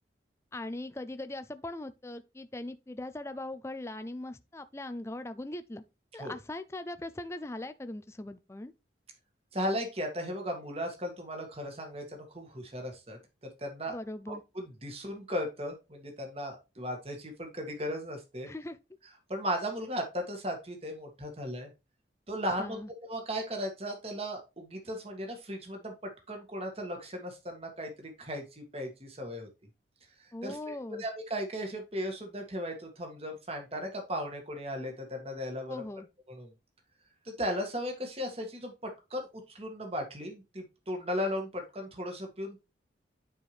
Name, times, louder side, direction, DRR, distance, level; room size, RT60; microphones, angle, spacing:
voice 1, 0.5-5.8 6.1-8.7 13.9-14.4 18.5-18.8 22.6-22.9 30.3-31.0 35.7-36.1, left 1 dB, 15° left, 0.4 m, -40 dB
voice 2, 9.5-13.2 13.6-13.9 14.3-18.5 19.3-21.7 22.3-29.5 30.4-35.8 36.3-36.5 37.3-42.6, equal, 30° right, 1.8 m, -36 dB
9.6 x 4.6 x 3.2 m
head